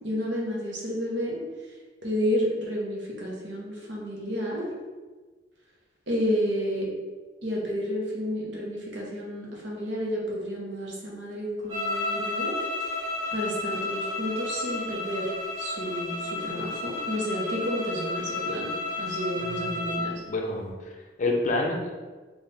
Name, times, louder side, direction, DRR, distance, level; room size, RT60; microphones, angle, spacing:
voice 1, 0.0-1.4 2.0-4.6 6.1-6.9 7.4-12.9 13.3-15.3 15.6-20.1, equal, 70° right, -3 dB, 1.0 m, -31 dB
sound 1, 11.7-20.1, left 2 dB, 20° right, 1.0 m, -32 dB
voice 2, 20.3-21.9, left 2 dB, 40° left, 1 dB, 0.5 m, -28 dB
4.1 x 2.5 x 3.3 m, 1.3 s
head